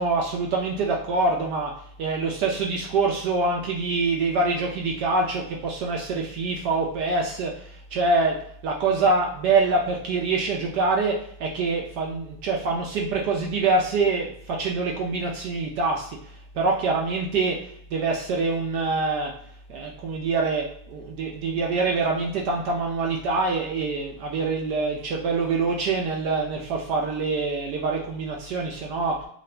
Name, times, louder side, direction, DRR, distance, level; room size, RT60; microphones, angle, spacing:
voice 1, 0.0-1.7 2.0-8.4 8.6-16.2 16.5-17.6 17.9-19.3 19.7-29.2, right 3 dB, 70° right, 0 dB, 1.0 m, -25 dB
3.8 x 2.4 x 3.2 m, 0.66 s
omnidirectional pair, 2.3 m